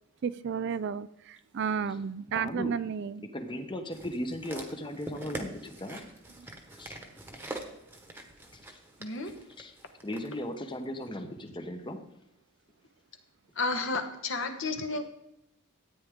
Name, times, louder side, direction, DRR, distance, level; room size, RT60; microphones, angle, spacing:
voice 1, 0.2-3.3 6.4-6.5, right 7 dB, 50° right, 16 dB, 0.3 m, -32 dB
voice 2, 2.3-2.7 3.3-6.0 6.8-7.0 9.6-9.7 10.0-12.1, left 1 dB, 20° left, 7 dB, 0.9 m, -37 dB
sound 1, 3.9-10.3 11.0-11.1, right 1 dB, 10° right, 1.2 m, -44 dB
voice 3, 9.0-9.3 13.6-15.0, left 3 dB, 55° left, 6 dB, 1.3 m, -31 dB
13.5 x 9.2 x 3.6 m, 0.86 s
head